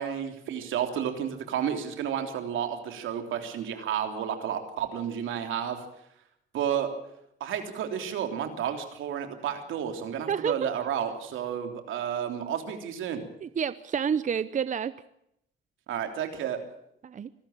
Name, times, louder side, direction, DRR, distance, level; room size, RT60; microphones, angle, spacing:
voice 1, 0.0-5.8 6.5-6.9 7.4-13.2 15.9-16.6, right 9 dB, 80° right, 6 dB, 3.4 m, -31 dB
voice 2, 10.3-10.7 13.4-14.9 17.0-17.3, right 7 dB, 40° right, 15 dB, 0.7 m, -29 dB
25.5 x 13.0 x 8.8 m, 0.76 s
cardioid pair, 90°, 20 cm